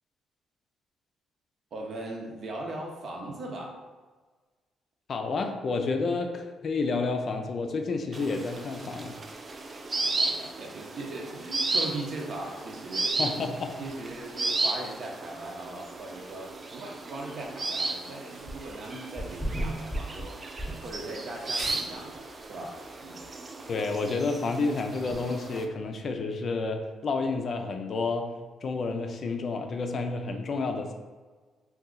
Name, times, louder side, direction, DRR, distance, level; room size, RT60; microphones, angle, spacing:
voice 1, 1.7-3.8 10.0-13.2 13.8-20.4 20.8-22.8 23.0-23.2, right 2 dB, 60° right, 0 dB, 0.7 m, -39 dB
voice 2, 5.1-9.1 13.2-13.8 23.7-28.3 28.6-30.9, left 3 dB, 50° left, 5 dB, 0.4 m, -30 dB
sound 1, 8.1-25.6, right 3 dB, 35° right, 0.3 m, -35 dB
Insect, 17.6-22.6, right 1 dB, 80° right, 1.3 m, -48 dB
sound 2, 18.4-18.8 19.2-21.3 21.7-21.8 22.3-22.4 22.7-22.8 23.2-23.3 25.1-25.2, right 1 dB, ahead, 0.9 m, -35 dB
2.7 x 2.3 x 3.7 m, 1.4 s
cardioid pair, 90°, 0 cm